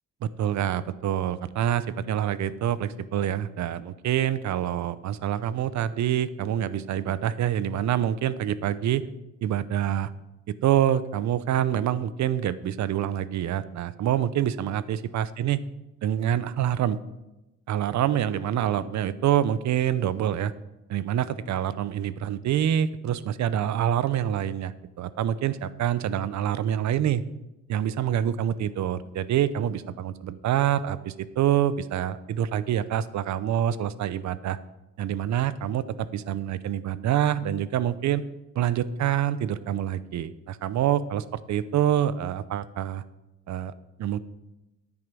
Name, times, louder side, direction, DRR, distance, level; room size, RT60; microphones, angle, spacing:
voice 1, 0.2-9.0 9.4-10.1 10.6-15.6 16.0-17.0 17.7-20.5 20.9-27.2 27.7-34.6 35.0-38.2 38.5-43.0 43.5-43.7 44.0-44.2, right 10 dB, 70° right, 16 dB, 0.7 m, -26 dB
9.8 x 8.8 x 6.0 m, 0.97 s
cardioid pair, 90°, 30 cm